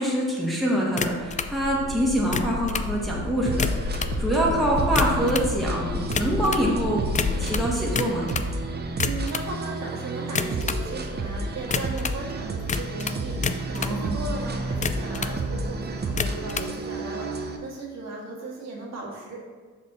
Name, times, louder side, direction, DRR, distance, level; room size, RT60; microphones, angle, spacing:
voice 1, 0.0-7.1 7.4-8.3 13.8-14.3, right 1 dB, ahead, -5 dB, 1.7 m, -25 dB
sound 1, 1.0-1.5 2.2-2.9 3.5-4.2 4.8-5.5 6.1-6.7 7.2-8.5 8.9-9.5 10.3-10.9 11.7-12.2 12.7-14.0 14.7-15.4 16.1-16.7, left 6 dB, 25° left, 0.4 m, -29 dB
sound 2, 1.2-7.6, left 4 dB, 70° left, 1.0 m, -32 dB
sound 3, 3.5-17.6, right 2 dB, 35° right, 0.7 m, -31 dB
voice 2, 9.0-19.5, right 3 dB, 60° right, -3 dB, 1.8 m, -36 dB
6.5 x 5.3 x 4.1 m, 1.4 s
cardioid pair, 90°, 30 cm